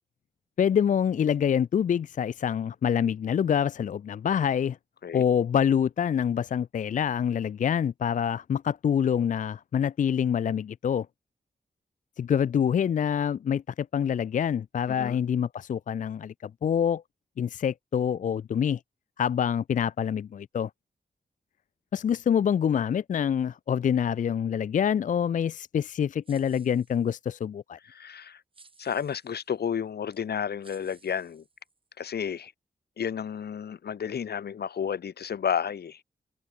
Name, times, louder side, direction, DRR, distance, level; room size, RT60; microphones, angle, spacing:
voice 1, 0.6-4.8 5.1-11.1 12.2-16.3 16.6-17.0 17.4-18.8 19.2-20.7 21.9-27.8, left 8 dB, 55° left, 0.4 m, -26 dB
voice 2, 14.9-15.2 27.8-28.4 28.8-31.4 32.0-32.5 33.0-36.0, left 8 dB, 85° left, 1.4 m, -31 dB
sound 1, 26.2-27.4 28.5-29.5 30.1-30.2 30.6-32.0, right 4 dB, 35° right, 6.0 m, -58 dB
wide cardioid pair, 175°, 16 cm